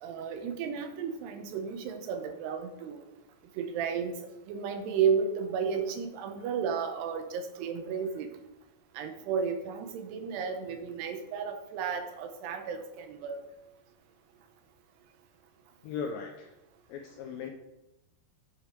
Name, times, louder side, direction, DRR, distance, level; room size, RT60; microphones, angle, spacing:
voice 1, 0.0-3.0 3.6-4.2 4.5-8.3 9.0-13.4, right 6 dB, 80° right, 7 dB, 2.9 m, -33 dB
voice 2, 15.8-16.5 16.9-17.5, left 6 dB, 85° left, 3 dB, 2.1 m, -37 dB
8.8 x 5.6 x 4.4 m, 0.92 s
omnidirectional pair, 4.8 m